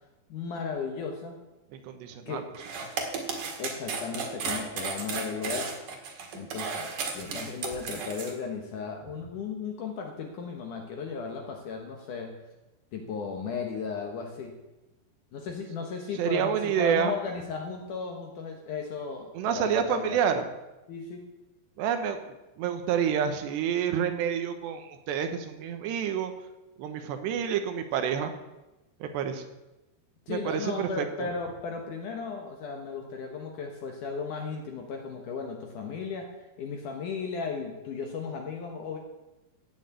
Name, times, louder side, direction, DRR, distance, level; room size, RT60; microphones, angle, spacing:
voice 1, 0.3-1.4 2.3-2.5 3.6-5.7 6.3-12.4 12.9-14.6 15.3-20.2 20.9-21.2 30.3-36.3 36.6-39.0, left 5 dB, 65° left, 2 dB, 2.2 m, -35 dB
voice 2, 1.7-2.4 16.2-17.1 19.3-20.4 21.8-26.3 26.8-28.3 29.0-29.4 30.3-31.3, right 8 dB, 80° right, 7 dB, 3.2 m, -28 dB
sound 1, 2.5-8.3, right 5 dB, 55° right, 2.9 m, -34 dB
16.0 x 6.5 x 8.3 m, 1.0 s
omnidirectional pair, 5.0 m